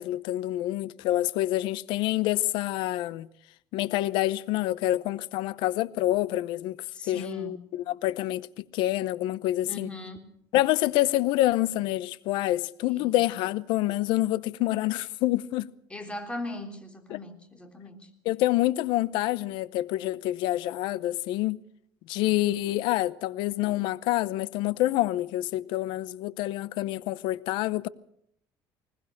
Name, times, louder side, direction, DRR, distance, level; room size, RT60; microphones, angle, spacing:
voice 1, 0.0-3.3 3.7-6.8 7.1-9.9 10.5-15.7 17.1-17.2 18.2-21.6 22.1-27.9, left 15 dB, 80° left, 0.8 m, -27 dB
voice 2, 6.9-7.6 9.7-10.2 12.9-13.2 15.9-18.1, left 1 dB, 15° left, 3.6 m, -39 dB
20.5 x 19.5 x 6.6 m
cardioid pair, 115°, 8 cm